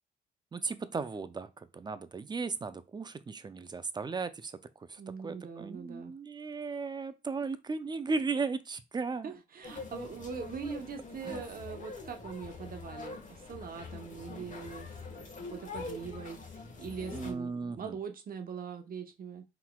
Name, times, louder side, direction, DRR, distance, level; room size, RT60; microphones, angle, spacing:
voice 1, 0.5-4.5 4.9-9.3 11.2-11.4 17.1-18.0, right 4 dB, 20° right, 0.4 m, -36 dB
voice 2, 5.0-6.1 9.2-19.4, right 6 dB, 45° right, 0.8 m, -42 dB
sound 1, 9.6-17.3, left 4 dB, 40° left, 1.2 m, -44 dB
4.4 x 4.0 x 2.2 m
cardioid pair, 90°, 20 cm